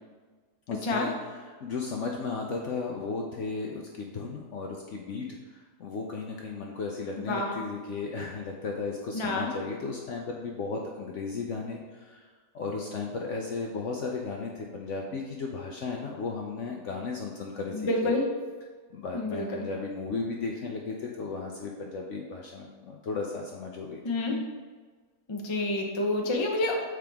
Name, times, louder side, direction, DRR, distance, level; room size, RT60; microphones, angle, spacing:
voice 1, 0.7-12.3 12.5-18.2 18.9-24.0, left 4 dB, 65° left, 0 dB, 0.8 m, -35 dB
voice 2, 9.1-9.5 17.7-18.2 19.1-19.7 24.0-24.4 25.3-26.8, left 2 dB, 30° left, 0 dB, 0.5 m, -28 dB
7.6 x 4.8 x 3.5 m, 1.4 s
omnidirectional pair, 1.8 m